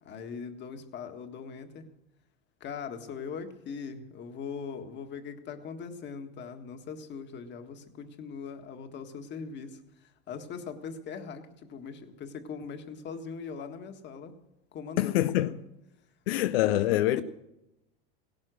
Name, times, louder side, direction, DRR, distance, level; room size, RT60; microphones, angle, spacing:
voice 1, 0.0-1.9 2.6-14.4 14.7-15.6 16.6-17.2, left 5 dB, 40° left, 1.7 m, -40 dB
voice 2, 15.0-15.5 16.3-17.2, left 15 dB, 85° left, 0.6 m, -25 dB
16.5 x 12.0 x 6.3 m
supercardioid pair, 120°, 29 cm